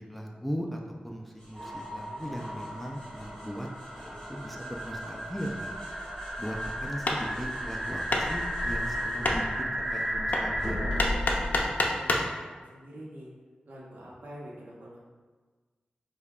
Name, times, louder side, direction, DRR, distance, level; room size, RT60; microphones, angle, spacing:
voice 1, 0.0-3.7 4.0-5.7 6.4-10.8, equal, 5° left, 0 dB, 0.4 m, -38 dB
sound 1, 1.4-10.2 10.6-11.6, left 1 dB, 20° left, 1.4 m, -40 dB
sound 2, 1.5-11.0, equal, 30° right, 1.2 m, -35 dB
voice 2, 2.1-2.6 11.6-13.3 13.7-15.0, equal, 75° right, -5 dB, 0.8 m, -46 dB
Hammer, 6.4-12.4, left 2 dB, 65° left, 0.4 m, -31 dB
5.1 x 2.2 x 2.4 m, 1.4 s
wide cardioid pair, 70°, 3 cm